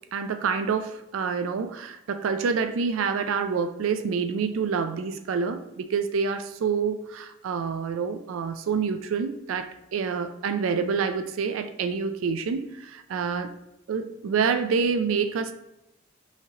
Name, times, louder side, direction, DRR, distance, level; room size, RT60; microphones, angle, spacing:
voice 1, 0.1-13.5 13.9-15.5, right 5 dB, 80° right, 9 dB, 0.4 m, -27 dB
5.7 x 2.8 x 3.0 m, 0.87 s
head